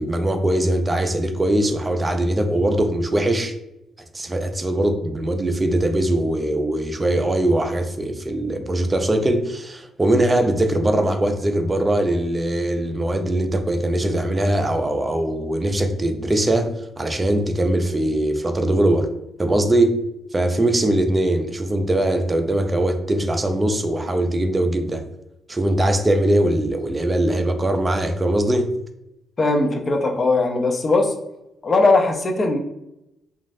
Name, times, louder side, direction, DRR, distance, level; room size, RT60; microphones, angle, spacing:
voice 1, 0.0-3.5 4.1-19.1 19.4-20.0 20.3-25.0 25.5-28.7, right 1 dB, 20° right, 7 dB, 0.4 m, -21 dB
voice 2, 29.4-31.1 31.6-32.6, left 3 dB, 35° left, 3 dB, 0.5 m, -19 dB
3.0 x 2.4 x 2.5 m, 0.88 s
cardioid pair, 90°, 0 cm